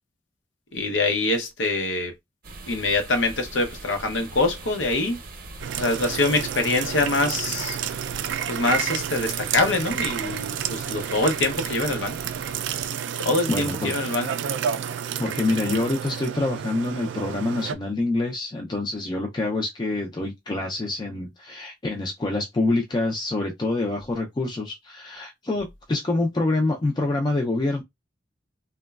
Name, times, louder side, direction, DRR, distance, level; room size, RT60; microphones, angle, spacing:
voice 1, 0.7-2.1 2.6-5.2 5.8-7.8 8.5-12.2 13.2-14.3, left 2 dB, 80° left, 0.7 m, -24 dB
sound 1, 2.4-12.9, right 3 dB, 50° right, 0.7 m, -42 dB
sound 2, 5.6-17.8, right 8 dB, 70° right, 0.3 m, -30 dB
voice 2, 13.5-13.9 15.2-27.8, left 2 dB, 25° left, 0.4 m, -26 dB
3.0 x 2.2 x 2.3 m
head